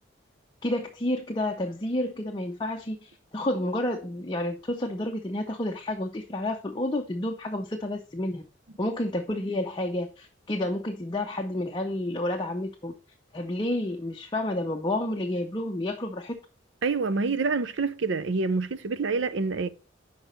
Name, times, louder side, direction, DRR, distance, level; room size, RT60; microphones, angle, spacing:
voice 1, 0.6-8.4 8.8-12.9 13.3-16.3, left 1 dB, 25° left, 0.6 m, -30 dB
voice 2, 16.8-19.7, right 4 dB, 65° right, 0.6 m, -27 dB
6.2 x 5.0 x 5.2 m
head